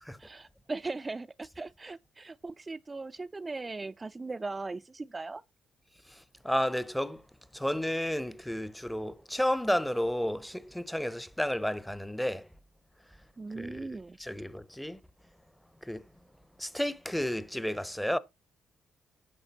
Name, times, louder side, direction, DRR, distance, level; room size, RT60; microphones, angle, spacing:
voice 1, 0.2-5.4 13.4-14.2, right 3 dB, 25° right, 0.4 m, -39 dB
voice 2, 6.4-7.2 7.5-12.5 13.6-15.0 15.8-16.0 16.6-18.2, equal, 5° left, 0.7 m, -32 dB
9.8 x 5.8 x 4.0 m
cardioid pair, 90°, 0 cm